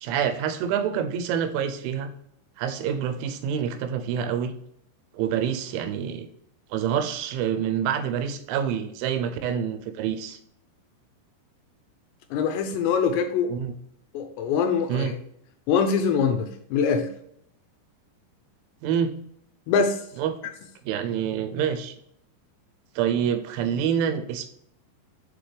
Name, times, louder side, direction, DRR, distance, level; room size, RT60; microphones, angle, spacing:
voice 1, 0.0-2.1 2.6-4.5 5.1-6.3 6.7-10.4 13.5-13.7 14.9-15.2 18.8-19.1 20.2-20.3 20.8-21.9 23.0-24.5, right 8 dB, 90° right, 8 dB, 3.2 m, -27 dB
voice 2, 12.3-13.5 14.1-15.2 15.7-17.1 19.7-20.0, left 6 dB, 80° left, 7 dB, 2.6 m, -23 dB
7.6 x 4.6 x 3.3 m, 0.73 s
omnidirectional pair, 5.4 m